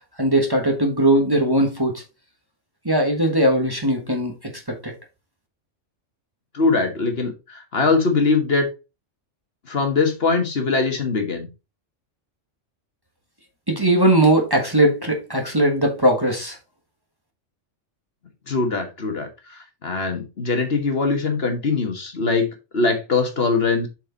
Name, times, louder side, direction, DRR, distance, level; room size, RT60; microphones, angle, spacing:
voice 1, 0.2-2.0 2.8-4.9 13.7-16.6, right 1 dB, 20° right, 1.4 m, -19 dB
voice 2, 6.5-8.7 9.7-11.5 18.5-22.5 22.7-23.9, left 4 dB, 55° left, 1.6 m, -22 dB
7.5 x 4.7 x 4.0 m
omnidirectional pair, 1.3 m